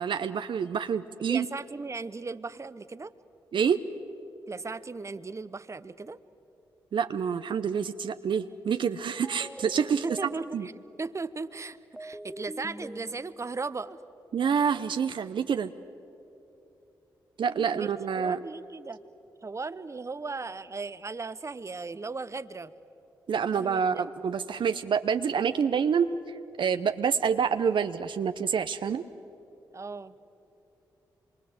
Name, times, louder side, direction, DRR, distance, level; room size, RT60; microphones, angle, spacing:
voice 1, 0.0-1.5 3.5-3.8 6.9-10.0 10.5-10.7 14.3-15.7 17.4-18.4 23.3-26.1 26.6-29.0, right 7 dB, 60° right, 9 dB, 0.7 m, -27 dB
voice 2, 1.3-3.1 4.5-6.2 10.0-14.0 17.7-17.9 18.2-19.0 19.4-22.7 23.5-24.0 29.7-30.1, right 4 dB, 30° right, 14 dB, 0.9 m, -37 dB
sound 1, 9.2-10.9 12.0-13.7, equal, ahead, 0.9 m, -43 dB
26.0 x 23.0 x 8.0 m, 3.0 s
hypercardioid pair, 40°, 9 cm